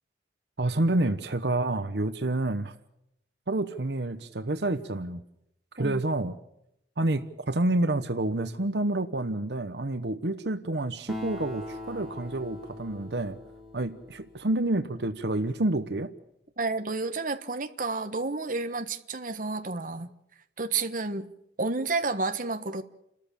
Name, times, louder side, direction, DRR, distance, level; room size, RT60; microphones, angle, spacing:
voice 1, 0.6-2.7 3.5-5.2 5.7-6.3 7.0-13.4 13.7-16.1, right 2 dB, 70° right, 1.1 m, -28 dB
Acoustic guitar, 11.1-14.9, left 1 dB, ahead, 3.6 m, -41 dB
voice 2, 16.6-20.1 20.6-21.3 21.6-22.8, right 3 dB, 50° right, 1.3 m, -30 dB
30.0 x 13.5 x 8.8 m
head